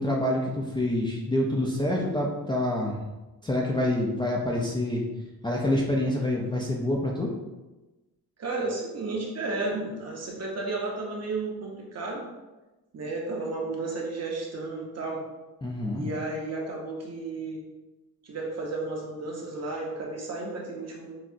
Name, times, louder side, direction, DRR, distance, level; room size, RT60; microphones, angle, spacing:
voice 1, 0.0-3.0 3.4-5.0 5.4-7.3 15.6-16.1, left 1 dB, 15° left, -3 dB, 0.4 m, -27 dB
voice 2, 8.4-12.3 12.9-15.2 15.9-17.6 18.2-21.1, right 3 dB, 45° right, -1 dB, 0.8 m, -33 dB
5.8 x 2.0 x 2.6 m, 1.1 s
cardioid pair, 115°, 37 cm